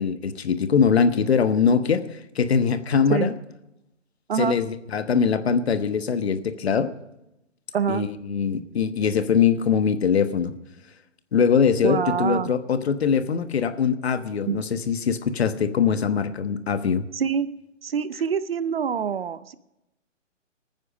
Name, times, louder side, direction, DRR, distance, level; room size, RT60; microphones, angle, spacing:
voice 1, 0.0-3.3 4.4-6.9 7.9-10.5 11.3-17.0, left 6 dB, 55° left, 11 dB, 1.2 m, -22 dB
voice 2, 7.7-8.1 11.8-12.5 14.5-14.6 17.1-17.5 17.8-19.5, right 7 dB, 50° right, 16 dB, 0.7 m, -25 dB
20.0 x 9.5 x 5.1 m, 0.90 s
hypercardioid pair, 160°, 38 cm